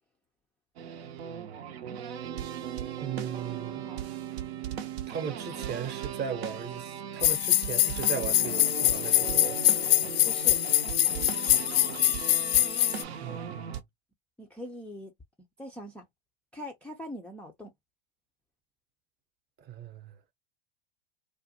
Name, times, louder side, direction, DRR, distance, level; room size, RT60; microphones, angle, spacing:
sound 1, 0.8-13.8, right 8 dB, 75° right, 0.5 m, -37 dB
voice 1, 3.0-3.9 5.1-9.6 13.1-13.8 19.6-20.2, right 7 dB, 30° right, 0.7 m, -37 dB
sound 2, 7.2-13.0, left 15 dB, 60° left, 0.5 m, -24 dB
voice 2, 10.2-10.6 14.4-15.1 15.6-16.1 16.5-17.7, equal, 5° left, 0.3 m, -42 dB
2.4 x 2.1 x 2.7 m
hypercardioid pair, 100°, 32 cm